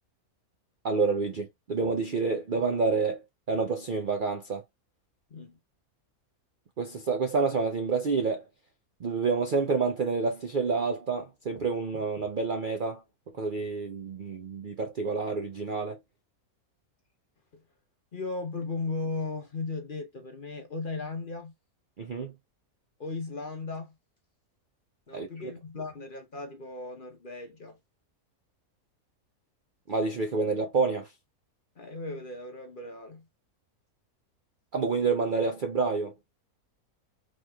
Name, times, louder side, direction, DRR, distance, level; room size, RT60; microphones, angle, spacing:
voice 1, 0.8-4.6 6.8-8.4 9.0-13.0 13.4-16.0 22.0-22.3 25.1-25.3 29.9-31.1 34.7-36.1, right 4 dB, 55° right, 0.6 m, -28 dB
voice 2, 18.1-21.5 23.0-23.9 25.1-27.8 31.8-33.3, left 3 dB, 40° left, 0.9 m, -36 dB
4.2 x 3.1 x 2.3 m
omnidirectional pair, 1.6 m